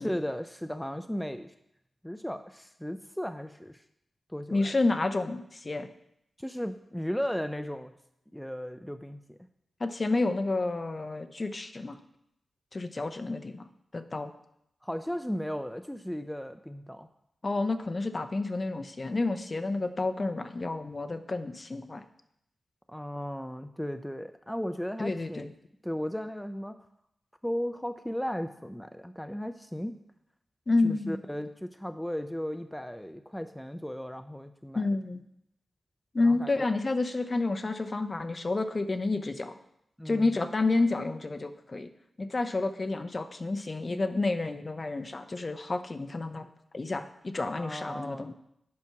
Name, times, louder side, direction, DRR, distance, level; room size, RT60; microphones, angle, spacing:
voice 1, 0.0-1.5 2.0-3.8 4.3-4.7 6.4-7.9 8.3-9.4 14.8-17.1 22.9-25.5 25.8-26.8 27.4-30.0 30.8-34.8 36.2-36.5 40.0-40.3 47.6-48.3, equal, 5° left, 10 dB, 0.5 m, -35 dB
voice 2, 4.5-5.9 9.8-12.0 12.7-13.7 13.9-14.3 17.4-22.0 25.0-25.5 30.7-31.2 34.7-35.2 36.1-39.5 40.1-41.9 42.2-46.5 46.7-48.3, left 3 dB, 40° left, 10 dB, 0.7 m, -30 dB
8.5 x 5.9 x 5.8 m, 0.78 s
cardioid pair, 65°, 0 cm